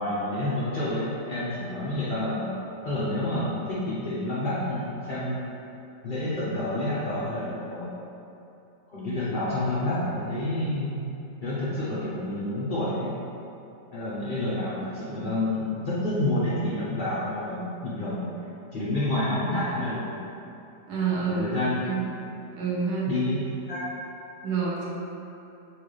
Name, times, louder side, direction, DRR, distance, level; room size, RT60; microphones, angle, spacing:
voice 1, 0.0-5.4 6.0-7.9 8.9-11.0 11.4-13.1 13.9-18.3 18.7-20.2 21.3-21.8 23.1-23.8, left 1 dB, 70° left, -10 dB, 0.4 m, -29 dB
voice 2, 20.9-22.0 22.6-23.1 24.4-24.9, right 5 dB, 70° right, -6 dB, 1.2 m, -28 dB
4.5 x 2.4 x 3.1 m, 2.8 s
omnidirectional pair, 1.8 m